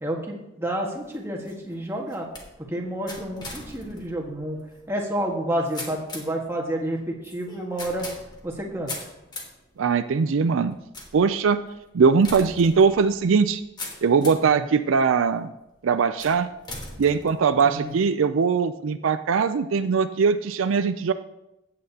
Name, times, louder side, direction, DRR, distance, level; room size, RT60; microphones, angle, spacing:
voice 1, 0.0-2.3 2.7-4.6 4.9-8.1 8.4-8.9 14.4-14.6 17.6-17.9, right 1 dB, 10° right, -1 dB, 1.5 m, -29 dB
sound 1, 0.9-14.5 15.1-15.6 16.2-18.0, left 2 dB, 20° left, 1.5 m, -41 dB
voice 2, 9.8-10.8 11.1-11.6 11.9-13.6 14.0-15.5 15.8-16.5 17.0-21.1, right 5 dB, 75° right, 11 dB, 0.4 m, -21 dB
15.5 x 8.6 x 2.8 m, 0.90 s
head